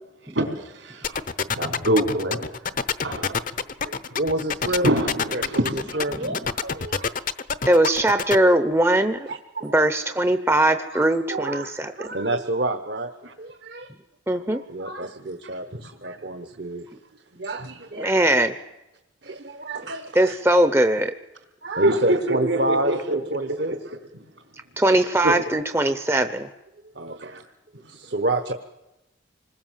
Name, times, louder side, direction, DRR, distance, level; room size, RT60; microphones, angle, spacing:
voice 1, 0.3-1.2 1.5-2.5 3.0-3.6 4.8-6.0 16.0-16.2 21.8-23.2 23.5-23.6 25.2-25.3 27.2-27.4, right 1 dB, 75° right, 4 dB, 4.0 m, -25 dB
sound 1, 1.0-8.4, left 6 dB, 40° left, 0.8 m, -26 dB
voice 2, 3.8-4.9 5.3-7.1 8.1-8.2 9.3-9.8 10.8-13.1 13.4-13.9 14.5-16.9 17.3-18.1 19.2-20.3 21.6-23.7 26.9-27.4 27.8-28.5, right 2 dB, 55° right, 7 dB, 1.3 m, -29 dB
voice 3, 6.1-6.4 7.7-9.3 9.6-12.1 14.3-14.6 18.0-18.5 20.1-21.1 24.8-26.5, right 1 dB, 10° right, 9 dB, 0.8 m, -20 dB
27.0 x 20.5 x 7.5 m, 0.97 s
head